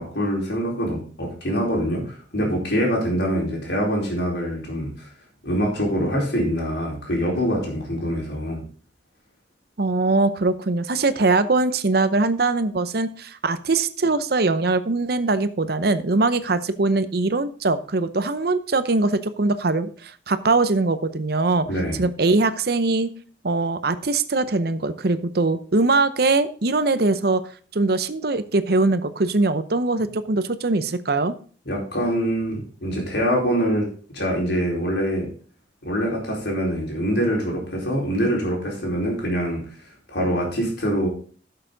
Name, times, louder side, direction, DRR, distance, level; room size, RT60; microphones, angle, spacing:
voice 1, 0.0-5.1 5.4-8.6 21.6-22.0 31.6-35.3 35.8-39.6 40.1-41.1, equal, 65° left, -2 dB, 4.4 m, -24 dB
voice 2, 9.8-21.7 22.0-23.1 23.4-27.4 27.7-31.3, right 3 dB, 55° right, 13 dB, 0.7 m, -22 dB
12.0 x 6.8 x 3.9 m, 0.43 s
head